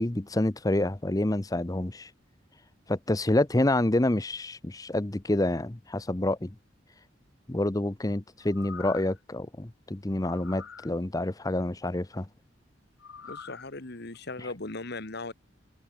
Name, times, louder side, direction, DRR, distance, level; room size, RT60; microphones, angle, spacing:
voice 1, 0.0-2.1 2.9-6.5 7.5-12.3, left 1 dB, 20° left, 0.8 m, -28 dB
sound 1, 8.4-9.2 10.2-10.9 13.0-13.7 14.1-14.2, left 6 dB, 90° left, 1.1 m, -45 dB
voice 2, 13.2-15.3, left 2 dB, 60° left, 1.8 m, -38 dB
head